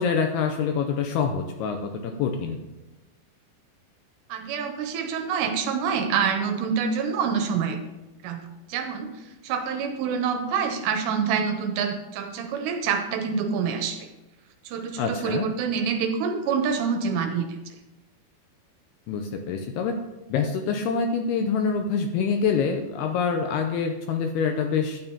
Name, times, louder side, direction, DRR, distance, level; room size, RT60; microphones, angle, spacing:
voice 1, 0.0-2.6 15.0-15.5 19.1-20.0 20.3-25.0, left 6 dB, 85° left, 4 dB, 2.3 m, -26 dB
voice 2, 4.3-7.8 8.2-8.4 8.7-9.1 9.4-14.1 14.7-17.6, right 6 dB, 85° right, 5 dB, 2.8 m, -26 dB
12.0 x 8.8 x 2.8 m, 1.0 s
omnidirectional pair, 5.1 m